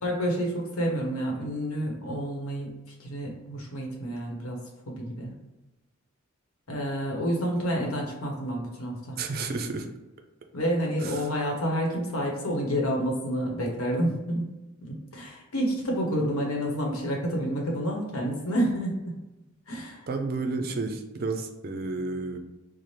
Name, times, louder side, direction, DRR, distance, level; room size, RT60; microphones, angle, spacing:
voice 1, 0.0-4.6 4.9-5.3 6.7-9.2 10.5-14.5 14.8-19.2 19.7-20.1, equal, 85° left, 0 dB, 0.9 m, -29 dB
voice 2, 9.2-9.9 11.0-11.3 20.1-22.4, right 3 dB, 45° right, 6 dB, 0.4 m, -31 dB
3.2 x 2.0 x 4.1 m, 1.0 s
head